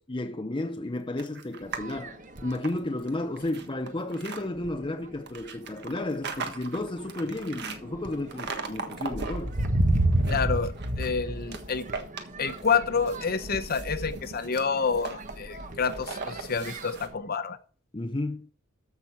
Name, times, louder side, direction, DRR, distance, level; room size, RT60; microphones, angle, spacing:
voice 1, 0.0-9.6 17.9-18.5, left 2 dB, 25° left, 0.7 m, -33 dB
sound 1, 1.2-1.9 2.3-4.4 5.3-7.8 8.3-9.7 10.0-11.2 11.5-12.8 13.1-17.1, right 4 dB, 55° right, 1.5 m, -38 dB
sound 2, 1.6-2.7 3.4-3.5 4.0-4.3 4.6-5.2 5.8-6.1 6.5-17.1, right 1 dB, 40° right, 1.3 m, -32 dB
voice 2, 10.3-11.8 12.4-17.6, left 5 dB, 45° left, 1.0 m, -28 dB
14.0 x 6.2 x 4.4 m
head